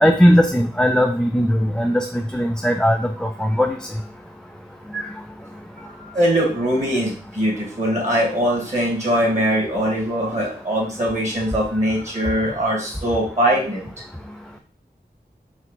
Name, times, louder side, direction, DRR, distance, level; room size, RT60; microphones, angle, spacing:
voice 1, 0.0-2.0 2.3-3.8 4.9-5.1, equal, 5° left, 3 dB, 0.3 m, -18 dB
voice 2, 6.1-13.9, equal, 40° right, -3 dB, 1.8 m, -21 dB
4.4 x 2.0 x 3.9 m, 0.42 s
wide cardioid pair, 55°, 18 cm